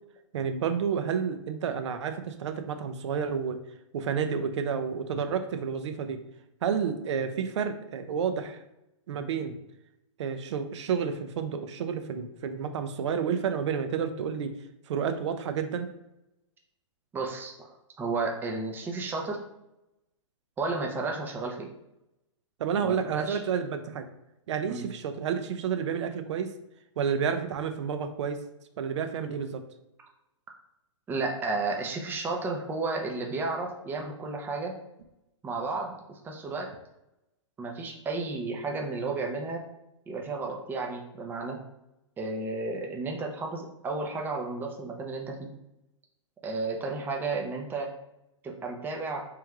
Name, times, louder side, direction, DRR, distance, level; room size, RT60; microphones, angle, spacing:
voice 1, 0.3-3.6 3.9-6.2 6.6-8.6 9.1-9.6 10.2-14.5 14.9-15.9 22.6-24.1 24.5-26.5 27.0-28.4 28.8-29.6, right 7 dB, 60° right, 8 dB, 0.6 m, -30 dB
voice 2, 17.1-19.4 20.6-21.7 22.8-23.4 24.7-24.8 31.1-34.7 35.4-36.7 37.6-39.6 40.1-41.6 42.2-45.5 46.4-47.9 48.4-49.2, right 3 dB, 10° right, 1 dB, 0.6 m, -32 dB
3.3 x 3.2 x 3.5 m, 0.90 s
hypercardioid pair, 140°, 16 cm